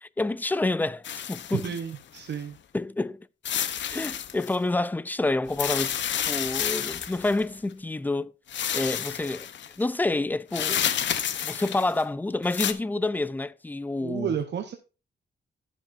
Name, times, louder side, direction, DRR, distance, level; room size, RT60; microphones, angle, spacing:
voice 1, 0.0-1.8 2.7-3.3 3.9-6.0 6.3-8.3 8.7-9.5 9.8-10.8 11.4-14.3, left 2 dB, 10° left, 0.4 m, -28 dB
sound 1, 1.0-2.3 3.5-4.6 5.5-7.4 8.5-9.7 10.5-12.0 12.4-12.7, left 9 dB, 75° left, 0.7 m, -30 dB
voice 2, 1.5-2.6 14.0-14.8, right 8 dB, 70° right, 0.8 m, -31 dB
12.5 x 7.2 x 2.5 m
wide cardioid pair, 110°, 19 cm